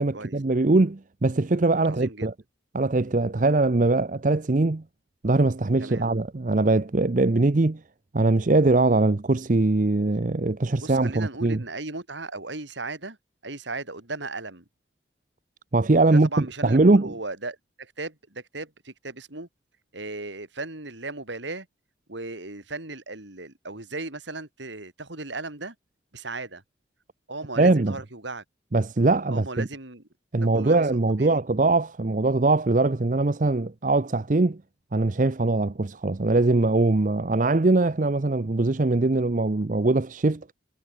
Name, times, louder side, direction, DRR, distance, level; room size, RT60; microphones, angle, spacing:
voice 1, 0.0-2.3 2.7-4.8 5.2-7.8 8.1-11.6 15.7-17.1 27.6-28.0 28.7-29.7 30.3-34.6 34.9-40.4, right 2 dB, 45° right, 0.6 m, -22 dB
voice 2, 1.8-2.3 5.8-6.1 10.8-13.2 13.4-14.6 16.0-19.5 19.9-21.7 22.1-25.8 26.1-26.6 27.3-28.4 29.3-30.0 30.4-30.8 31.2-31.4, right 3 dB, 75° right, 3.5 m, -36 dB
head